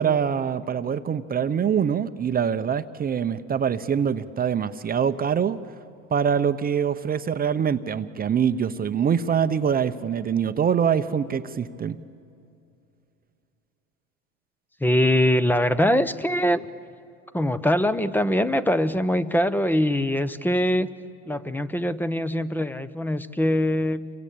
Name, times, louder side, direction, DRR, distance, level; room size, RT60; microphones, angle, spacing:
voice 1, 0.0-5.6 6.1-12.0, right 7 dB, 30° right, 10 dB, 0.9 m, -24 dB
voice 2, 14.8-16.6 17.3-20.9 21.3-24.1, left 1 dB, 5° left, 14 dB, 0.9 m, -23 dB
29.0 x 23.5 x 8.7 m, 2.5 s
supercardioid pair, 95°, 30 cm